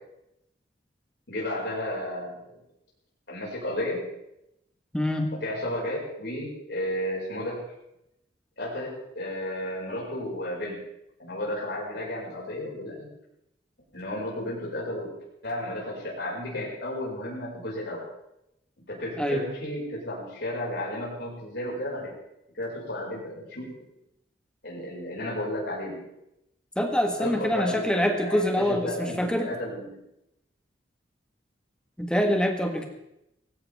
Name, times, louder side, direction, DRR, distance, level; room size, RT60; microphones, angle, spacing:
voice 1, 1.3-2.4 3.3-4.0 5.4-7.6 8.6-10.8 11.2-13.1 13.9-15.1 15.4-18.0 18.9-22.1 22.5-23.7 24.6-26.0 27.2-30.0, left 1 dB, 70° left, -6 dB, 5.5 m, -33 dB
voice 2, 4.9-5.3 19.2-19.4 26.8-29.5 32.0-32.9, equal, 5° left, 3 dB, 1.5 m, -25 dB
18.0 x 16.0 x 3.6 m, 0.84 s
head